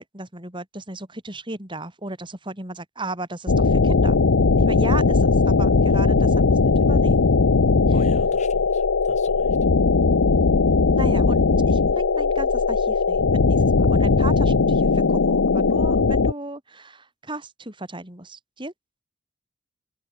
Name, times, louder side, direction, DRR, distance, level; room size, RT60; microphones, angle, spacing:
voice 1, 0.0-4.2 4.6-7.2 10.9-18.7, right 2 dB, 25° right, 4.9 m, -35 dB
sound 1, 3.5-16.3, left 4 dB, 85° left, 0.8 m, -19 dB
voice 2, 7.9-9.6, left 2 dB, 35° left, 4.1 m, -42 dB
head